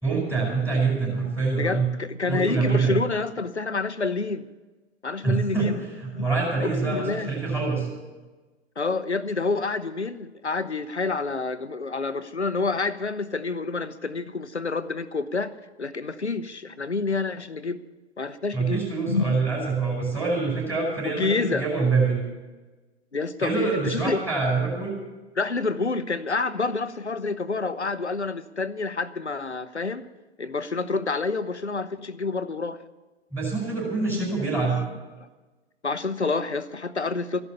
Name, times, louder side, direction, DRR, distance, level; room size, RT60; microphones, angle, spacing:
voice 1, 0.0-1.8 2.3-3.0 5.2-5.7 6.2-7.9 18.5-22.2 23.4-25.0 33.3-34.8, right 4 dB, 5° right, -3 dB, 4.9 m, -25 dB
voice 2, 1.6-4.5 5.0-5.8 6.1-6.3 6.6-7.3 8.8-15.5 15.8-17.8 18.2-19.4 21.0-21.7 23.1-24.2 25.4-30.1 30.4-32.8 34.0-34.2 35.8-37.4, left 3 dB, 85° left, 13 dB, 0.9 m, -28 dB
14.5 x 11.0 x 7.0 m, 1.2 s
figure-of-eight pair, 105°, 33 cm